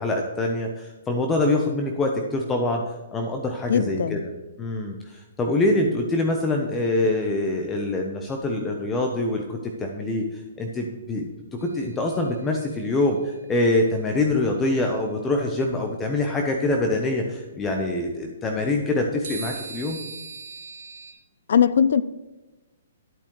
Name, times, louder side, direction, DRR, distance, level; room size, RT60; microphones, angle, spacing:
voice 1, 0.0-2.8 3.1-4.2 4.6-11.3 11.6-20.0, left 2 dB, 15° left, 1.0 m, -25 dB
voice 2, 3.7-4.2 21.5-22.0, left 8 dB, 65° left, 0.4 m, -20 dB
sound 1, 11.6-12.8 19.2-21.1, right 5 dB, 65° right, 2.1 m, -39 dB
11.0 x 8.5 x 3.3 m
hypercardioid pair, 130°, 0 cm